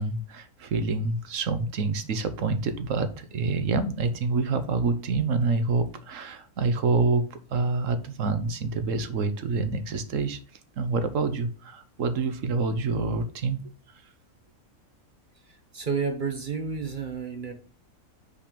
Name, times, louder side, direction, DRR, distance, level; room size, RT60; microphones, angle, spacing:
voice 1, 0.0-7.2 7.5-10.4 10.8-13.6, right 3 dB, 65° right, 9 dB, 1.2 m, -27 dB
voice 2, 15.7-17.5, right 5 dB, 40° right, 5 dB, 1.0 m, -30 dB
5.7 x 4.2 x 5.1 m, 0.38 s
omnidirectional pair, 1.6 m